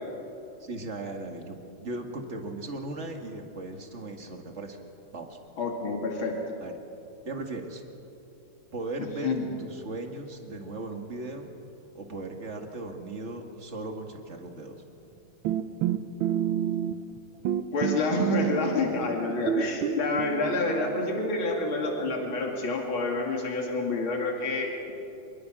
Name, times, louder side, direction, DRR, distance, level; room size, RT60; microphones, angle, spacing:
voice 1, 0.6-4.8 5.1-5.4 6.6-6.7 7.2-7.8 8.7-11.5 11.9-14.8, right 2 dB, 35° right, 3 dB, 2.2 m, -37 dB
voice 2, 5.6-6.4 9.2-9.5 17.7-24.9, left 3 dB, 65° left, 1 dB, 3.2 m, -28 dB
sound 1, 15.4-17.2 17.4-19.0 19.5-22.1, right 10 dB, 70° right, 1.5 m, -29 dB
26.0 x 23.0 x 6.2 m, 2.8 s
omnidirectional pair, 2.4 m